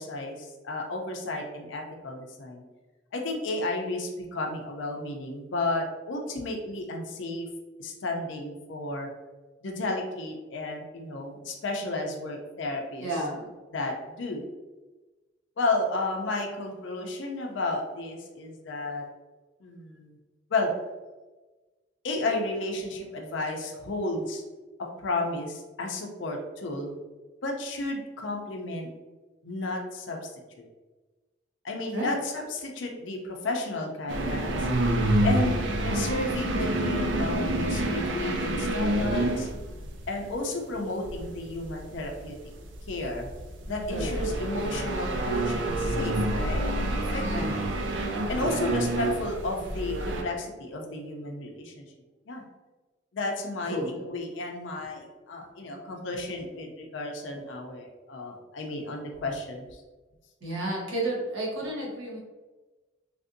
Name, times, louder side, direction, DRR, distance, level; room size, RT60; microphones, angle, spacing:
voice 1, 0.0-2.6 3.1-7.5 7.8-9.1 9.6-13.1 13.7-14.4 15.6-19.0 19.6-20.1 20.5-20.7 22.0-24.4 24.8-27.0 27.4-28.9 29.4-30.3 31.6-34.7 35.2-39.5 40.1-42.4 42.9-43.3 43.6-47.5 48.3-51.8 52.3-52.4 53.1-59.8, left 2 dB, 70° left, 2 dB, 0.5 m, -32 dB
voice 2, 13.0-13.5 31.9-32.1 43.9-44.2 47.2-47.5 53.7-54.0 60.4-62.2, right 1 dB, 85° right, -4 dB, 1.1 m, -31 dB
sound 1, 34.1-40.2 41.0-50.2, right 1 dB, 70° right, 0.4 m, -28 dB
3.3 x 2.6 x 2.5 m, 1.2 s
head